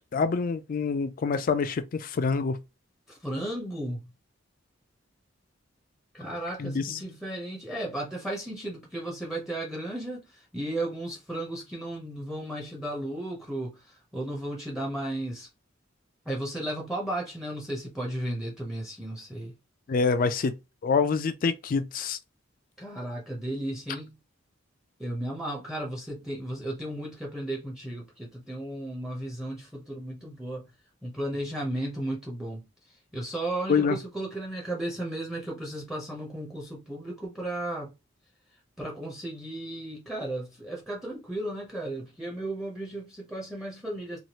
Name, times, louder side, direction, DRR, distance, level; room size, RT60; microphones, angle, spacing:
voice 1, 0.1-2.6 6.6-7.0 19.9-20.6 20.8-22.2 33.7-34.0, left 5 dB, 45° left, 0.4 m, -26 dB
voice 2, 3.1-4.1 6.1-15.5 16.2-19.5 22.8-24.1 25.0-30.7 31.0-32.7 33.1-37.9 38.8-44.2, right 1 dB, ahead, 0.6 m, -34 dB
3.1 x 2.3 x 2.8 m
head